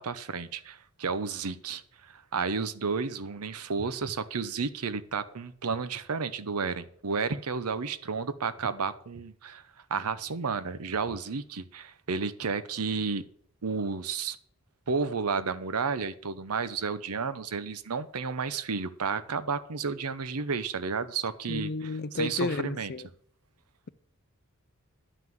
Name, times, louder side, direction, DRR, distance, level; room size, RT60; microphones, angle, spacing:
voice 1, 0.0-9.6 9.9-13.3 13.6-14.4 14.9-22.9, right 5 dB, 90° right, 0.8 m, -32 dB
voice 2, 21.5-23.1, left 3 dB, 45° left, 0.5 m, -32 dB
11.0 x 5.9 x 7.7 m
head